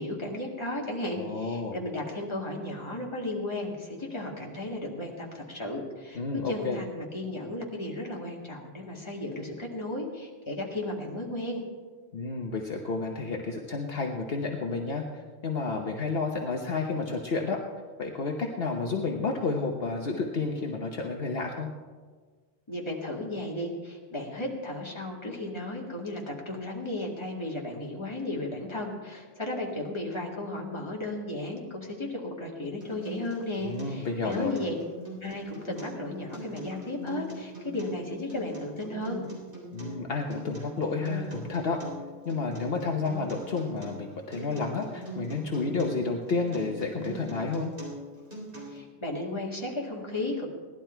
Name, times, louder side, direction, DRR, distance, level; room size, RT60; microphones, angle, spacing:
voice 1, 0.0-6.2 6.5-11.6 22.7-34.7 35.2-39.2 48.6-50.5, left 1 dB, 25° left, -2 dB, 2.1 m, -34 dB
voice 2, 1.2-1.8 6.2-6.8 12.1-15.0 15.4-17.6 18.0-21.7 33.6-34.6 39.7-41.8 42.2-47.7, left 4 dB, 65° left, 1 dB, 1.2 m, -31 dB
Acoustic guitar, 32.8-48.8, right 1 dB, 55° right, 3.9 m, -42 dB
17.0 x 11.5 x 4.5 m, 1.5 s
omnidirectional pair, 1.1 m